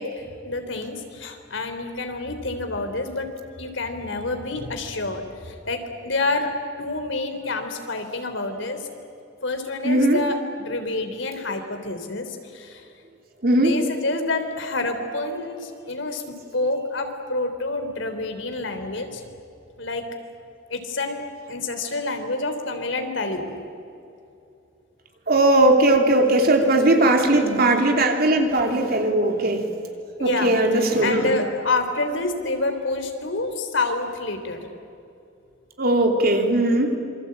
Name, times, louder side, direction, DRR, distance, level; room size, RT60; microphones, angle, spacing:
voice 1, 0.0-3.3 3.6-6.5 6.8-8.9 9.4-12.8 13.5-19.3 19.8-20.1 20.7-23.6 27.2-27.7 30.2-30.6 31.0-34.7, left 2 dB, 70° left, 6 dB, 3.4 m, -28 dB
voice 2, 9.8-10.2 13.4-13.8 25.3-29.6 30.2-31.3 35.8-37.0, right 1 dB, 50° right, 3 dB, 3.1 m, -19 dB
26.5 x 24.5 x 8.8 m, 2.6 s
head